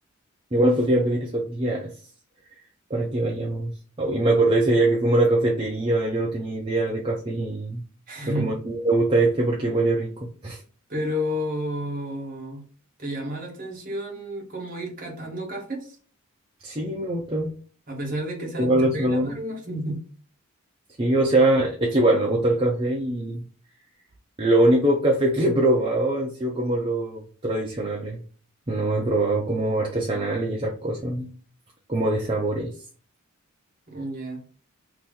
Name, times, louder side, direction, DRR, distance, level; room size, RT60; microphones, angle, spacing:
voice 1, 0.5-1.9 2.9-3.7 4.0-7.8 8.4-10.6 16.6-17.5 18.6-19.4 21.0-23.4 24.4-28.2 28.7-31.3 31.9-32.7, right 1 dB, 25° right, 0.6 m, -23 dB
voice 2, 8.1-8.5 10.9-12.6 13.0-15.9 17.9-20.0 33.9-34.4, equal, 40° right, 1.3 m, -31 dB
2.9 x 2.7 x 3.5 m
head